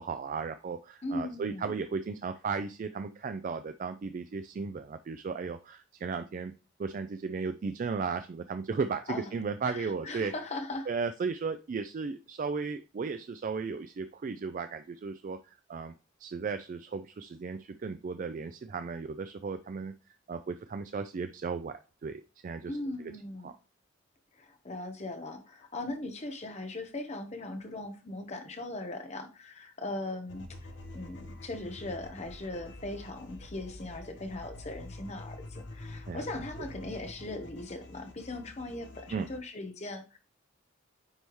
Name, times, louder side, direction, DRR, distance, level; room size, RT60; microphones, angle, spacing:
voice 1, 0.0-6.5 6.8-10.3 10.9-15.9 16.2-19.9 20.3-23.1 23.4-23.5 36.1-36.2 39.1-39.3, right 5 dB, 40° right, 9 dB, 0.3 m, -35 dB
voice 2, 1.0-1.7 9.1-9.3 9.6-10.9 22.7-23.5 24.4-30.5 30.9-40.2, left 2 dB, 35° left, 5 dB, 0.9 m, -39 dB
sound 1, 30.3-39.4, left 1 dB, 65° left, 1.0 m, -47 dB
9.5 x 3.5 x 3.0 m, 0.34 s
head